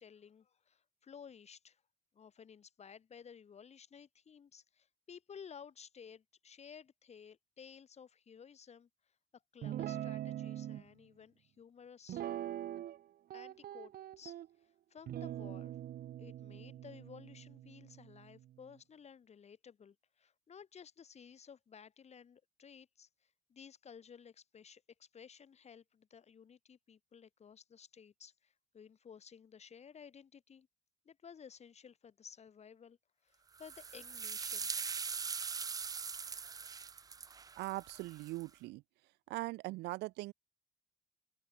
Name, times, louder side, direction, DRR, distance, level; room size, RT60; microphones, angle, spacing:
voice 1, 0.0-1.8 2.1-8.9 9.3-12.2 13.3-15.7 16.2-30.7 31.0-33.0 33.2-34.9, left 7 dB, 40° left, 7.9 m, -55 dB
Guitar, 9.6-10.8 12.1-13.0 13.3-14.5 15.1-18.5, right 12 dB, 60° right, 2.3 m, -43 dB
sound 1, 33.6-38.4, right 5 dB, 20° right, 0.4 m, -41 dB
voice 2, 37.6-38.8 39.3-40.3, right 20 dB, 85° right, 0.7 m, -40 dB
open air
cardioid pair, 110°, 17 cm